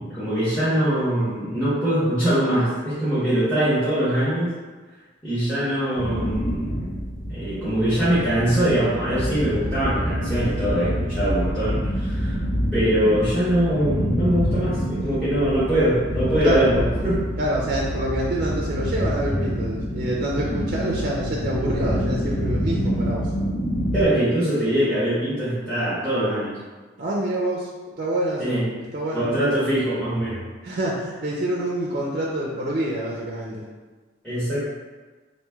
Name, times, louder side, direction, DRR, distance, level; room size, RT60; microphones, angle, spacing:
voice 1, 0.0-4.5 5.2-6.7 7.3-12.4 12.7-17.2 23.9-26.5 28.4-28.7 29.1-30.4 34.2-34.6, right 1 dB, 5° left, -14 dB, 1.1 m, -22 dB
sound 1, 6.0-24.0, equal, 75° left, 0.9 m, -26 dB
voice 2, 17.4-23.3 27.0-27.7 28.0-28.6 28.9-29.3 30.6-33.6, right 1 dB, 50° right, -4 dB, 0.5 m, -26 dB
3.1 x 2.7 x 3.4 m, 1.3 s
head